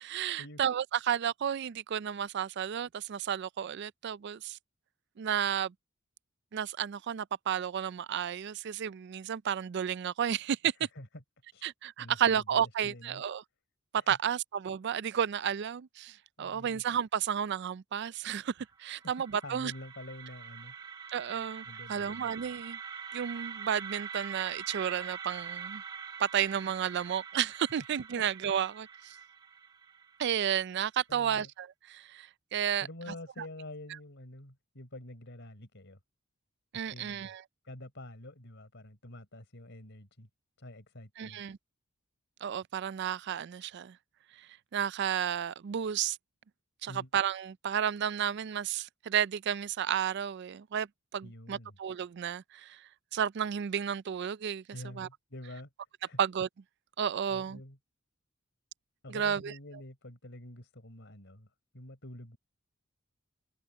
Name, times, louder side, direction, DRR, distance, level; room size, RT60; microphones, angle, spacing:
voice 1, 0.0-4.6 5.2-5.7 6.5-10.7 11.6-13.4 14.1-18.5 18.8-19.7 21.1-22.8 23.1-25.8 26.2-29.2 30.2-32.9 36.7-37.4 41.2-41.6 42.4-44.0 44.4-46.2 46.8-50.9 51.1-54.6 54.9-55.1 56.2-56.5 57.0-57.6 59.1-59.5, right 8 dB, 55° right, 0.4 m, -32 dB
voice 2, 10.8-11.2 11.5-11.6 12.0-13.2 14.0-14.2 16.4-16.8 19.4-20.9 21.6-22.3 31.1-31.5 32.8-36.0 36.7-37.3 37.6-40.3 40.6-41.4 46.9-47.1 51.2-51.8 54.7-55.7 56.0-56.2 57.3-57.8 59.0-61.5 61.7-62.4, left 1 dB, 60° left, 4.7 m, -47 dB
sound 1, 18.7-30.7, right 7 dB, 20° right, 0.8 m, -44 dB
head